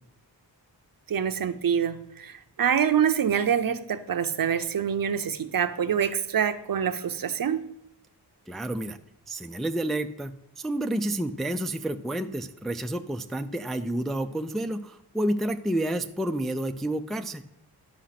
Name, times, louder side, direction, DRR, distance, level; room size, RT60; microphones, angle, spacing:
voice 1, 1.1-7.6, right 8 dB, 55° right, 11 dB, 0.7 m, -26 dB
voice 2, 8.5-9.0 9.3-17.4, right 1 dB, ahead, 7 dB, 0.4 m, -30 dB
11.5 x 5.0 x 5.8 m, 0.76 s
wide cardioid pair, 110°, 41 cm